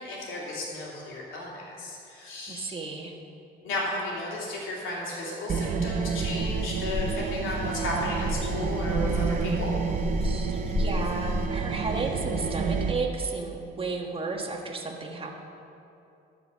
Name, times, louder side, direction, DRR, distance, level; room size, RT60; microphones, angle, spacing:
voice 1, 0.0-2.8 3.6-9.7, left 1 dB, 85° left, -4 dB, 2.7 m, -34 dB
voice 2, 2.5-3.1 10.2-15.4, right 3 dB, 25° right, 1 dB, 1.3 m, -33 dB
sound 1, 5.5-12.9, right 5 dB, 45° right, 0.6 m, -29 dB
sound 2, 6.2-11.5, left 2 dB, 30° left, 1.0 m, -33 dB
13.0 x 5.1 x 6.1 m, 2.7 s
cardioid pair, 90°, 20 cm